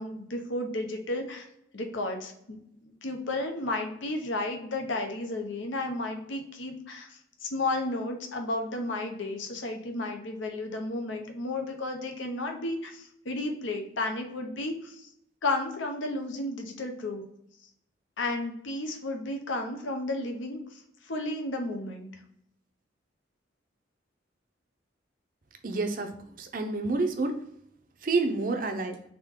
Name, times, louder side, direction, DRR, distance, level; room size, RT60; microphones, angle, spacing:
voice 1, 0.0-1.5 1.7-15.1 15.4-17.2 18.2-22.1, left 2 dB, 80° left, 4 dB, 0.8 m, -33 dB
voice 2, 25.6-27.4 28.0-29.0, right 3 dB, 45° right, 6 dB, 0.6 m, -29 dB
3.6 x 3.6 x 3.6 m, 0.73 s
head